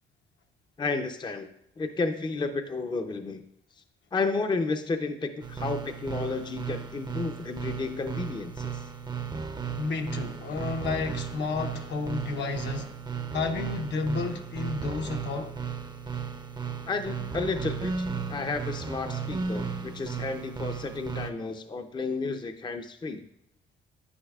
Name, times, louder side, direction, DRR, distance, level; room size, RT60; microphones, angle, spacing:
voice 1, 0.8-1.5 1.8-3.4 4.1-8.8 16.9-23.3, left 3 dB, 20° left, 0.6 m, -32 dB
sound 1, 5.4-21.3, right 6 dB, 20° right, 0.6 m, -35 dB
voice 2, 9.8-13.0 13.3-15.6, left 4 dB, 65° left, 0.9 m, -31 dB
9.8 x 8.8 x 2.4 m
cardioid pair, 90°, 20 cm